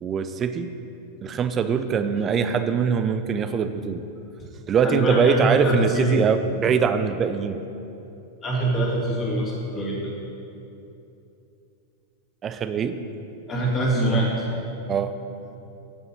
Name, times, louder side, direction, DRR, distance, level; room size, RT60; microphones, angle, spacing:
voice 1, 0.0-0.7 1.2-4.0 4.7-7.6 12.4-13.0 14.9-15.1, right 6 dB, 25° right, 10 dB, 0.5 m, -23 dB
voice 2, 4.8-6.3 8.4-10.0 13.5-14.3, right 1 dB, 25° left, -4 dB, 2.2 m, -23 dB
7.9 x 5.5 x 7.1 m, 2.8 s
figure-of-eight pair, 90°, 0 cm